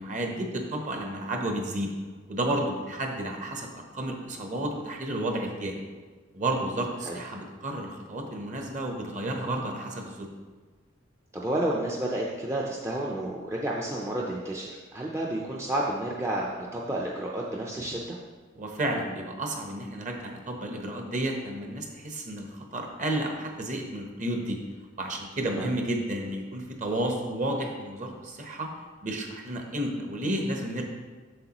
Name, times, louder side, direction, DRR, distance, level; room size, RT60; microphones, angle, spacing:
voice 1, 0.0-1.9 2.3-5.8 6.3-10.3 18.5-24.6 25.0-28.7 29.0-30.9, right 1 dB, 40° right, 2 dB, 0.9 m, -31 dB
voice 2, 11.3-18.2 25.5-25.7, right 1 dB, 15° right, -3 dB, 0.5 m, -31 dB
7.7 x 6.6 x 2.9 m, 1.4 s
head